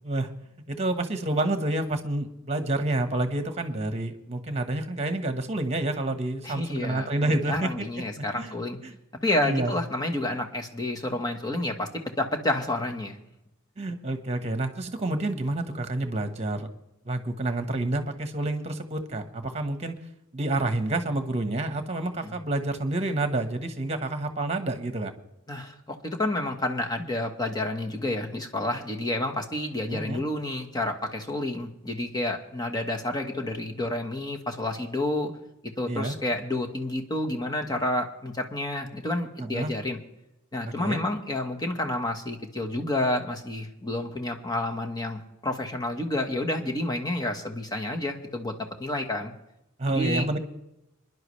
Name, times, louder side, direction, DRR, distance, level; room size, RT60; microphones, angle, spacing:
voice 1, 0.7-7.8 8.2-8.6 8.8-9.0 9.4-9.7 13.8-16.7 17.0-20.0 20.3-25.1 29.9-30.2 35.9-36.2 39.4-39.7 40.6-41.0 49.8-50.4, right 2 dB, 30° right, 7 dB, 1.3 m, -29 dB
voice 2, 6.4-8.8 9.2-11.9 12.2-13.2 22.2-22.3 25.5-35.3 35.8-40.0 40.5-48.5 48.8-49.3 49.9-50.3, left 1 dB, 20° left, 3 dB, 1.3 m, -29 dB
25.5 x 11.0 x 3.3 m, 0.88 s
head